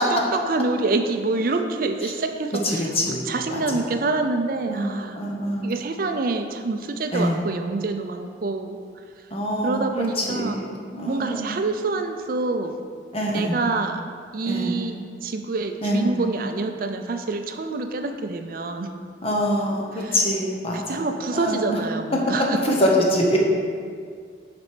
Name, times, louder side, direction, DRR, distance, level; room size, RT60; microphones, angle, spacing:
voice 1, 0.1-2.9 3.3-5.2 5.6-8.8 9.6-10.6 11.0-12.8 13.3-14.0 14.3-18.9 19.9-20.2 20.7-22.8, right 3 dB, 50° right, 6 dB, 0.5 m, -26 dB
voice 2, 2.6-3.2 3.5-3.8 4.7-5.7 7.1-7.4 9.3-11.6 13.1-13.6 14.4-14.8 15.8-16.1 19.2-21.0 21.3-21.8 22.6-23.4, equal, 35° left, -1 dB, 1.1 m, -25 dB
7.4 x 5.2 x 5.0 m, 2.1 s
head